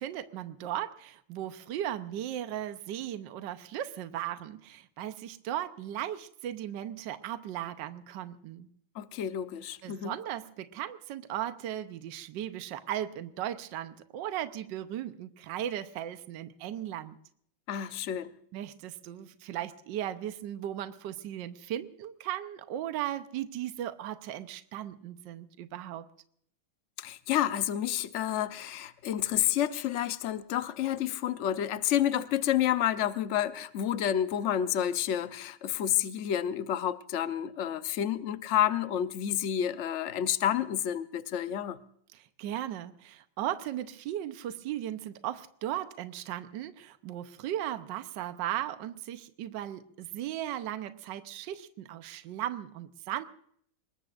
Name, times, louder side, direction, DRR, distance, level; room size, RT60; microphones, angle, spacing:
voice 1, 0.0-8.7 9.8-17.2 18.5-26.1 42.1-53.2, right 11 dB, 65° right, 10 dB, 1.4 m, -37 dB
voice 2, 8.9-10.1 17.7-18.3 27.0-41.8, left 10 dB, 90° left, 11 dB, 0.6 m, -29 dB
25.5 x 21.5 x 2.5 m, 0.65 s
omnidirectional pair, 2.2 m